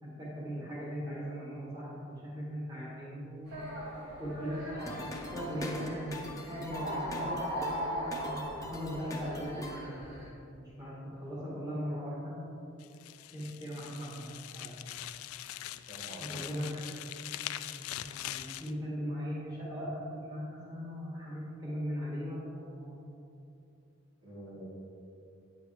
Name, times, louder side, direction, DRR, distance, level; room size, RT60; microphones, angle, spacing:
voice 1, 0.0-3.6 4.2-4.7 5.3-10.0 10.5-12.5 13.3-14.9 16.2-16.8 17.3-17.7 18.0-23.0, equal, 20° right, -7 dB, 1.5 m, -39 dB
sound 1, 3.5-10.3, equal, 50° right, 2.1 m, -39 dB
sound 2, 4.8-9.8, left 1 dB, 15° left, 0.6 m, -43 dB
sound 3, 12.8-18.7, left 13 dB, 90° left, 0.3 m, -42 dB
voice 2, 15.9-16.4 24.2-24.7, right 1 dB, 75° right, -5 dB, 2.1 m, -47 dB
9.0 x 8.1 x 3.3 m, 2.8 s
head